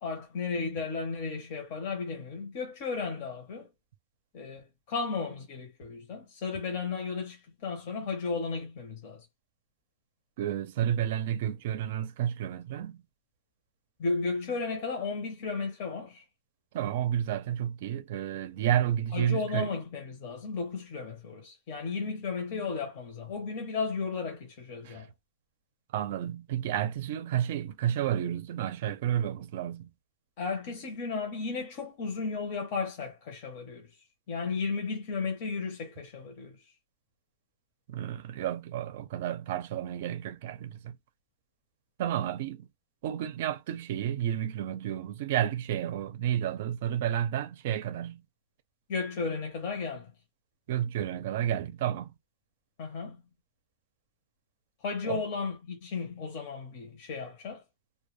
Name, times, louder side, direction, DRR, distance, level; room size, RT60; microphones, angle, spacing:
voice 1, 0.0-3.7 4.3-9.2 14.0-16.2 19.1-25.1 30.4-33.9 34.3-36.6 48.9-50.1 52.8-53.2 54.8-57.6, left 4 dB, 45° left, 0.7 m, -34 dB
voice 2, 10.4-13.0 16.7-19.7 24.8-25.1 25.9-29.9 37.9-41.0 42.0-42.7 43.0-48.2 50.7-52.1 55.1-55.2, right 10 dB, 55° right, 0.5 m, -31 dB
2.2 x 2.2 x 3.1 m
supercardioid pair, 175°, 0 cm